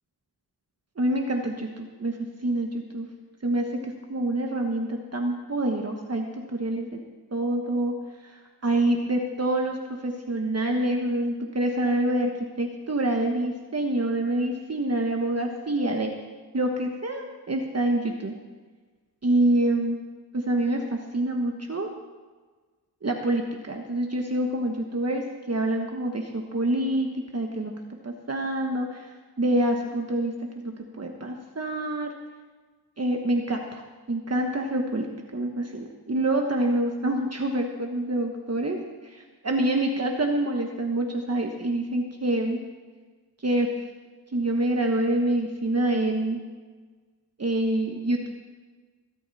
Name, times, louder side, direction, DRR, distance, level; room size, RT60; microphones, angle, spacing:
voice 1, 1.0-2.2 2.4-3.1 3.4-7.0 7.3-7.9 8.6-9.8 10.0-12.3 12.6-16.1 16.5-18.3 19.2-20.0 20.3-21.9 23.0-27.1 27.3-27.7 28.0-32.1 33.0-33.8 34.1-35.1 35.3-38.8 39.0-42.6 43.4-43.7 44.3-46.4 47.4-48.3, right 1 dB, 35° right, 2 dB, 1.3 m, -26 dB
22.0 x 12.5 x 4.2 m, 1.4 s
wide cardioid pair, 120°, 42 cm